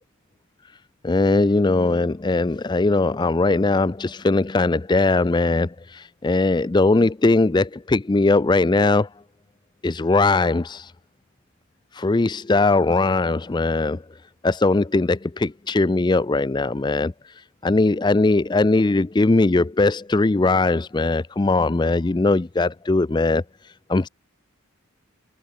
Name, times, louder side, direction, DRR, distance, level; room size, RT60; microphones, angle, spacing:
voice 1, 1.0-9.1 9.8-10.9 11.9-14.0 14.4-24.1, left 2 dB, 20° left, 0.4 m, -20 dB
head